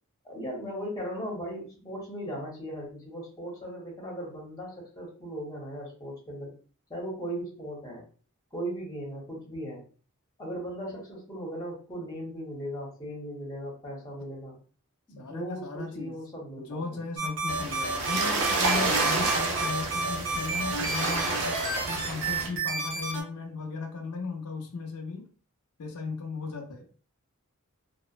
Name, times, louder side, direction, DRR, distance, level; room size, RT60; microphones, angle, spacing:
voice 1, 0.2-6.5 6.9-8.0 8.5-9.8 10.4-14.6 15.1-17.0, equal, 15° left, -4 dB, 0.9 m, -38 dB
voice 2, 15.2-16.2 16.7-25.3 25.8-26.9, left 4 dB, 85° left, 4 dB, 0.5 m, -36 dB
sound 1, 17.2-23.2, right 3 dB, 55° right, 1.0 m, -31 dB
sound 2, 17.5-22.5, right 3 dB, 80° right, 0.7 m, -29 dB
2.9 x 2.0 x 2.4 m, 0.40 s
head